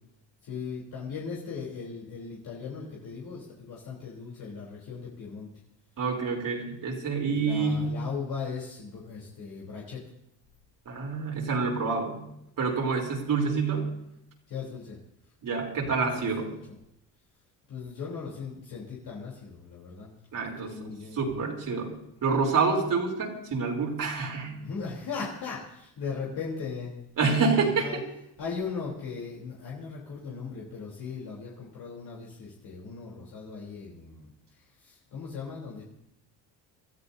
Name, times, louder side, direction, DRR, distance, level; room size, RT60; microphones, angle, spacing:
voice 1, 0.4-5.5 7.2-10.0 14.5-15.0 15.9-16.6 17.7-21.2 24.3-28.0 28.4-34.3 34.6-35.8, left 5 dB, 60° left, -4 dB, 3.6 m, -38 dB
voice 2, 6.0-8.0 10.9-12.2 12.6-13.9 15.4-16.5 20.3-21.9 22.2-24.5 27.2-27.9, right 4 dB, 45° right, -1 dB, 3.5 m, -27 dB
26.5 x 13.0 x 2.7 m, 0.79 s
cardioid pair, 100°, 43 cm